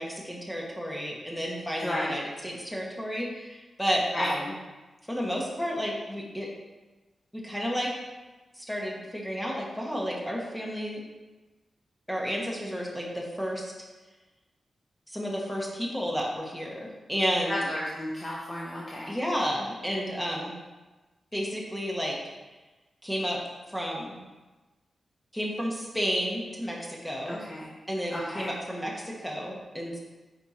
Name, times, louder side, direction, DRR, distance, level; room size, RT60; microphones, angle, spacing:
voice 1, 0.0-4.6 5.1-6.5 7.3-7.9 8.6-11.0 12.1-13.6 15.1-17.6 19.0-20.6 21.3-22.2 23.0-23.4 23.7-24.2 25.3-27.4 27.9-30.0, equal, 5° left, -2 dB, 1.3 m, -31 dB
voice 2, 1.8-2.1 4.1-4.3 17.5-19.1 27.3-27.7 28.1-28.5, left 1 dB, 20° left, -5 dB, 0.9 m, -33 dB
9.0 x 4.4 x 4.3 m, 1.2 s
wide cardioid pair, 170°, 0 cm